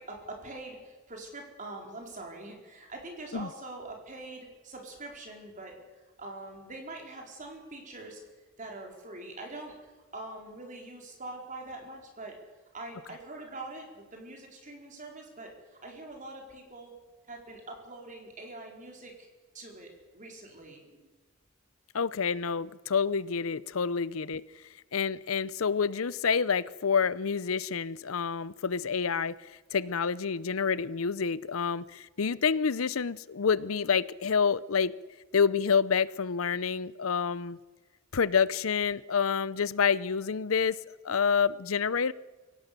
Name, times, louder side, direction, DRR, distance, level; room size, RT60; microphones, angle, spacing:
voice 1, 0.0-8.2 8.6-9.7 10.1-12.4 12.7-16.9 17.3-19.3 19.5-21.0, right 2 dB, 40° right, 1 dB, 4.4 m, -44 dB
voice 2, 21.9-24.4 24.9-34.9 35.3-37.6 38.1-40.8 41.0-42.1, left 6 dB, 90° left, 18 dB, 0.7 m, -28 dB
24.0 x 17.0 x 6.8 m, 1.3 s
head